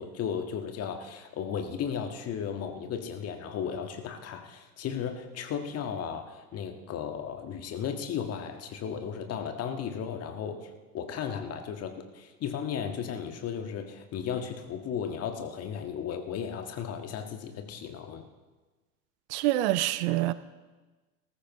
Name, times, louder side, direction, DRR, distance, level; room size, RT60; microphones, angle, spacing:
voice 1, 0.0-10.7 10.9-18.2, left 7 dB, 30° left, 1.7 m, -35 dB
voice 2, 19.3-20.3, right 15 dB, 50° right, 0.7 m, -26 dB
20.0 x 13.5 x 3.1 m
figure-of-eight pair, 85°, 46 cm